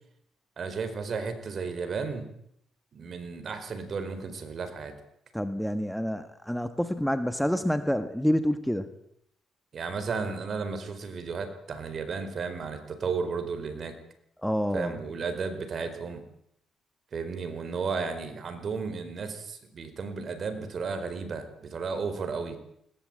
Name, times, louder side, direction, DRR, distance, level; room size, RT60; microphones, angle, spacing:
voice 1, 0.6-2.3 2.9-4.9 9.7-14.0 14.7-16.2 17.1-22.6, right 5 dB, 50° right, 9 dB, 4.7 m, -33 dB
voice 2, 5.3-8.9 14.4-15.0, equal, ahead, 10 dB, 1.6 m, -28 dB
20.5 x 20.0 x 9.1 m, 0.75 s
cardioid pair, 90°, 0 cm